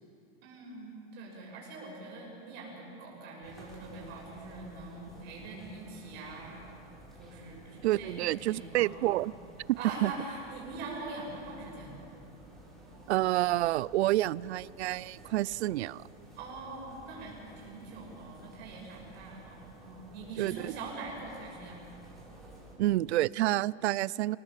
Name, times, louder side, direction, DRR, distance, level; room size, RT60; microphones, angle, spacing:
voice 1, 0.4-6.6 7.2-9.1 9.8-12.0 16.4-21.8, right 3 dB, 30° right, -2 dB, 6.4 m, -43 dB
sound 1, 3.4-22.8, right 1 dB, ahead, 4.0 m, -53 dB
voice 2, 7.8-9.3 10.0-10.1 13.1-16.0 20.4-20.7 22.8-24.4, right 16 dB, 80° right, 23 dB, 0.5 m, -28 dB
27.0 x 18.0 x 7.5 m, 2.7 s
supercardioid pair, 170°, 33 cm